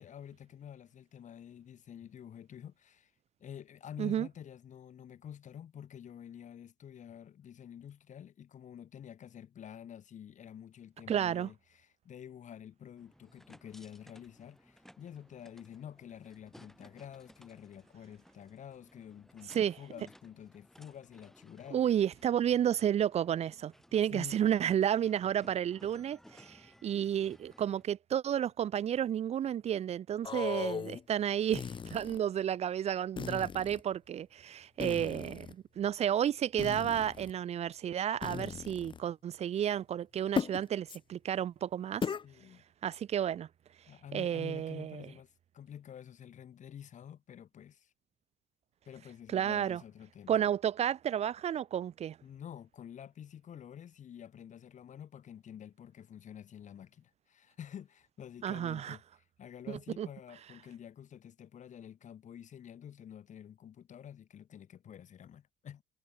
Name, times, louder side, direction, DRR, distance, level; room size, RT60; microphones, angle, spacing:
voice 1, 0.0-3.1 3.4-21.9 24.1-24.5 42.2-42.6 43.9-47.9 48.8-50.3 52.2-59.0 59.4-65.8, left 9 dB, 45° left, 1.4 m, -49 dB
voice 2, 11.1-11.5 19.5-19.8 21.7-42.1 42.8-43.5 44.1-45.1 49.3-49.8 50.3-52.2 58.4-59.0 59.7-60.1, right 10 dB, 40° right, 0.4 m, -31 dB
sound 1, 13.0-27.8, equal, ahead, 1.5 m, -60 dB
sound 2, 30.2-31.0 31.5-32.2 33.2-33.8 34.8-35.5 36.6-37.3 38.2-39.0 40.4-40.6 40.9-41.0 42.0-42.2, left 6 dB, 30° left, 0.7 m, -37 dB
cardioid pair, 110°, 17 cm